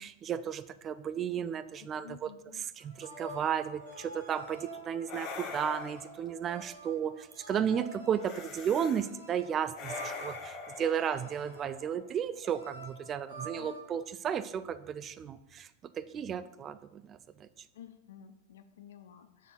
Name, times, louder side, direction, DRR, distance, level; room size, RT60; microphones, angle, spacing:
voice 1, 0.0-2.3 2.8-15.7 16.0-17.5, right 8 dB, 25° right, 14 dB, 0.3 m, -34 dB
voice 2, 1.8-2.6 13.4-13.8 17.7-19.5, left 9 dB, 60° left, 10 dB, 0.4 m, -52 dB
sound 1, 2.8-13.9, right 2 dB, 90° left, 2.1 m, -48 dB
sound 2, 3.9-4.2 5.1-6.3 8.2-9.1 9.7-12.0, left 4 dB, 40° left, 0.9 m, -44 dB
6.4 x 3.4 x 5.9 m, 0.91 s
figure-of-eight pair, 90°, 0 cm